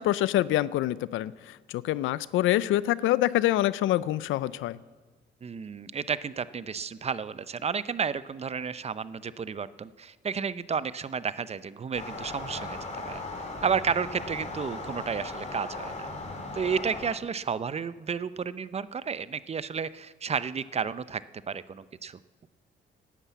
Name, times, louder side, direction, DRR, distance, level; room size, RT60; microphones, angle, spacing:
voice 1, 0.0-4.8, left 14 dB, 85° left, 19 dB, 0.5 m, -26 dB
voice 2, 5.4-12.8 13.0-13.2 13.6-16.1 16.5-22.2, right 6 dB, 30° right, 16 dB, 0.5 m, -32 dB
sound 1, 11.9-17.1, left 2 dB, 35° left, 2.6 m, -38 dB
12.0 x 9.8 x 8.3 m, 1.3 s
cardioid pair, 90°, 20 cm